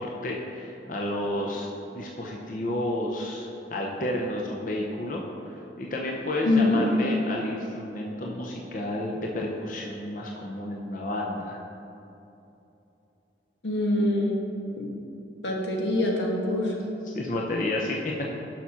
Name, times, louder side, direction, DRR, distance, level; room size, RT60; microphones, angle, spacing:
voice 1, 0.0-11.6 17.0-18.0, left 1 dB, 50° left, -1 dB, 0.7 m, -31 dB
voice 2, 6.4-6.8 13.6-14.4 14.8-14.9 15.4-16.7, left 2 dB, 90° left, -1 dB, 1.3 m, -24 dB
7.0 x 5.8 x 5.8 m, 2.8 s
head